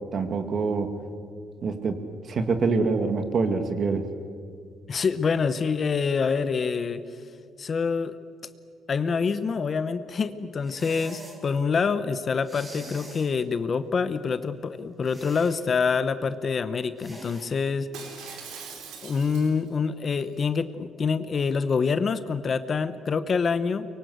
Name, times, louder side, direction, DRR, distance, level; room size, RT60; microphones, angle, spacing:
voice 1, 0.1-1.0 1.6-2.0 2.3-4.1, right 4 dB, 40° right, 7 dB, 2.2 m, -25 dB
voice 2, 4.9-7.0 7.6-8.2 8.9-17.9 19.0-23.9, left 5 dB, 35° left, 12 dB, 0.9 m, -26 dB
sound 1, 10.6-11.4 12.4-13.3 15.0-15.6 17.0-17.5, right 1 dB, 20° right, 4.8 m, -44 dB
Shatter, 17.9-19.7 20.2-20.5, right 6 dB, 80° right, 4.3 m, -41 dB
24.0 x 23.5 x 8.1 m, 2.2 s
cardioid pair, 145°, 0 cm